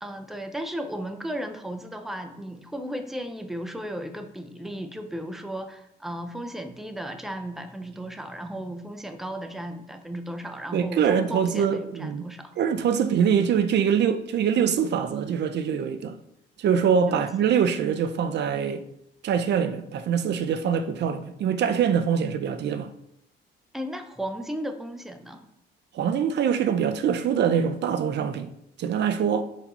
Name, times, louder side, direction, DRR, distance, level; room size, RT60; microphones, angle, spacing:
voice 1, 0.0-12.5 17.1-17.5 23.7-25.5, right 1 dB, ahead, 0.5 m, -35 dB
voice 2, 10.7-12.2 12.6-16.2 16.6-18.8 19.2-22.9 25.9-28.5 28.8-29.4, right 7 dB, 60° right, 0.5 m, -24 dB
4.4 x 2.8 x 4.1 m
cardioid pair, 90°, 20 cm